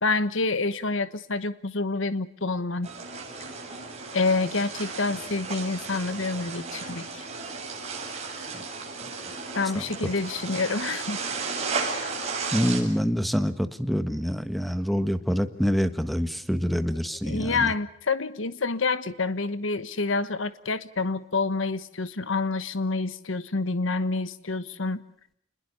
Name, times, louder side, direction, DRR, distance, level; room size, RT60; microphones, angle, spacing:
voice 1, 0.0-2.9 4.1-7.3 9.5-11.2 17.2-25.0, left 3 dB, 80° left, 13 dB, 1.3 m, -28 dB
sound 1, 2.8-12.8, right 4 dB, 35° right, 7.7 m, -34 dB
voice 2, 12.5-17.7, equal, ahead, 10 dB, 1.5 m, -26 dB
28.5 x 21.0 x 6.9 m, 0.68 s
head